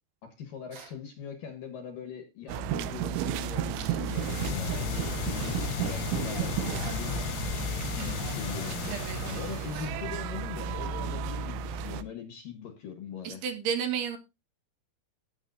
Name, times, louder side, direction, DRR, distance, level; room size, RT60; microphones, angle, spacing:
voice 1, 0.2-7.4 8.0-13.4, left 8 dB, 60° left, 8 dB, 2.4 m, -41 dB
sound 1, 0.7-1.0 3.7-4.0 6.7-7.1 9.7-10.0, right 5 dB, 45° right, 4.3 m, -48 dB
sound 2, 2.5-12.0, right 8 dB, 85° right, 3.2 m, -33 dB
sound 3, 4.0-10.0, left 11 dB, 85° left, 3.2 m, -35 dB
voice 2, 13.3-14.2, right 7 dB, 65° right, 7 dB, 3.3 m, -31 dB
18.5 x 7.3 x 2.6 m, 0.26 s
omnidirectional pair, 5.4 m